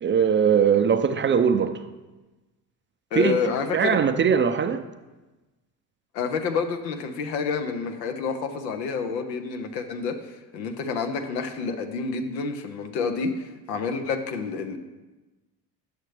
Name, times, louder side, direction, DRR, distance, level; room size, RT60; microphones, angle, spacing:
voice 1, 0.0-1.8 3.2-3.4 3.7-4.8, right 7 dB, 25° right, 0.4 m, -21 dB
voice 2, 3.1-4.0 6.1-10.2 10.5-14.8, left 5 dB, 85° left, 0.8 m, -28 dB
9.8 x 6.4 x 3.3 m
hypercardioid pair, 55°, 48 cm